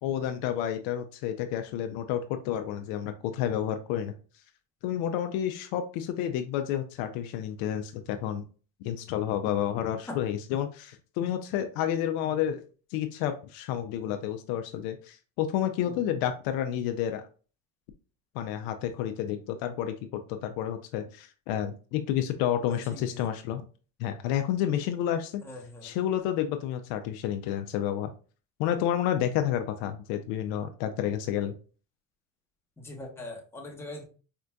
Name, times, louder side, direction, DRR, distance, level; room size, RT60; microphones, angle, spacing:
voice 1, 0.0-4.2 4.8-8.4 8.8-12.6 12.9-17.2 18.3-19.9 20.3-23.6 24.0-25.4 25.8-28.1 28.6-31.5, left 10 dB, 65° left, 8 dB, 0.5 m, -30 dB
voice 2, 15.8-16.2 22.6-23.3 25.4-25.9 32.8-34.0, left 2 dB, 5° left, -1 dB, 0.9 m, -42 dB
4.4 x 2.5 x 2.2 m, 0.37 s
supercardioid pair, 110°, 39 cm